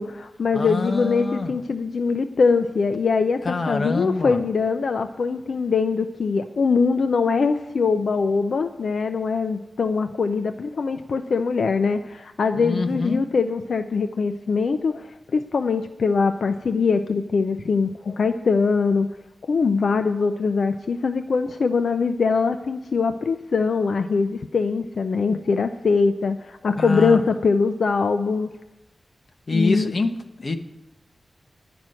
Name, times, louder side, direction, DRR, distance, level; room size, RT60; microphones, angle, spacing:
voice 1, 0.0-19.1 19.5-28.5 29.5-29.9, left 4 dB, 75° left, 9 dB, 0.5 m, -22 dB
voice 2, 0.5-1.5 3.4-4.4 12.6-13.2 26.8-27.2 29.5-30.6, left 3 dB, 45° left, 6 dB, 1.1 m, -25 dB
11.0 x 6.0 x 8.8 m, 1.0 s
wide cardioid pair, 110°, 0 cm